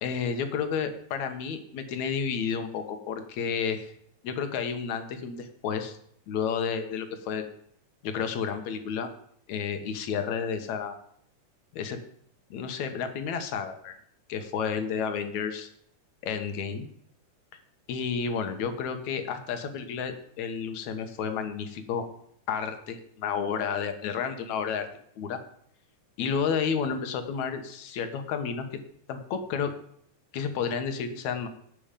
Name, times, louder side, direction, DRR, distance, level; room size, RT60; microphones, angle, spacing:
voice 1, 0.0-3.9 4.2-6.0 6.3-7.4 8.0-9.1 9.5-11.0 11.7-12.0 12.5-13.9 14.3-15.7 16.2-16.9 17.9-22.1 22.5-24.9 25.2-25.4 26.2-28.7 29.1-29.7 30.3-31.5, left 6 dB, 65° left, 7 dB, 2.5 m, -31 dB
17.5 x 6.3 x 5.2 m, 0.67 s
omnidirectional pair, 3.7 m